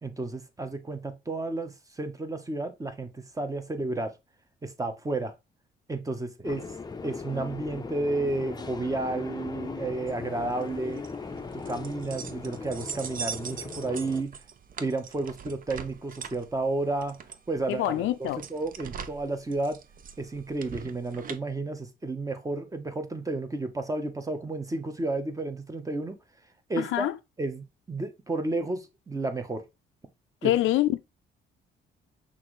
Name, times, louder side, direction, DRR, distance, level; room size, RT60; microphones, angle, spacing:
voice 1, 0.0-3.1 3.3-4.1 4.6-5.3 5.9-6.6 7.0-11.0 11.5-14.3 14.8-17.2 17.5-19.8 20.2-26.2 26.7-27.1 27.4-29.6 30.4-30.5, right 2 dB, 15° right, 0.8 m, -32 dB
sound 1, 6.4-14.2, left 4 dB, 20° left, 0.5 m, -39 dB
sound 2, 10.1-21.4, right 6 dB, 45° right, 0.6 m, -42 dB
voice 2, 17.7-18.4 26.8-27.1 30.4-31.0, left 14 dB, 80° left, 0.5 m, -25 dB
5.8 x 2.6 x 3.1 m
cardioid pair, 90°, 20 cm